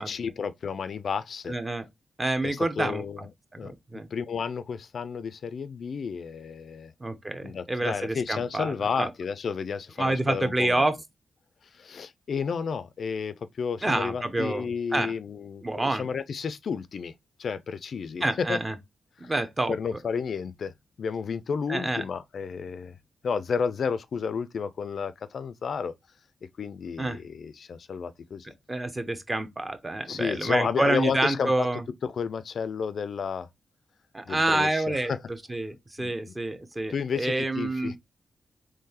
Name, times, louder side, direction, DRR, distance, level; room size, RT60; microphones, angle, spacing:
voice 1, 0.0-1.5 2.4-3.3 3.6-3.7 4.1-6.9 7.4-10.9 11.7-17.1 17.4-18.6 19.2-19.3 19.7-23.0 23.2-25.9 26.6-28.5 30.1-31.7 32.0-33.5 34.3-35.2 36.0-36.1 36.9-37.9, left 6 dB, 65° left, 0.3 m, -31 dB
voice 2, 1.5-1.8 2.2-3.0 3.5-4.1 7.0-9.1 10.0-10.9 13.8-15.1 15.6-16.1 18.2-18.7 19.2-19.7 21.7-22.0 27.0-27.2 28.7-31.8 34.1-35.1 35.5-37.9, right 2 dB, 20° right, 0.7 m, -28 dB
3.7 x 3.1 x 2.7 m
cardioid pair, 95°, 0 cm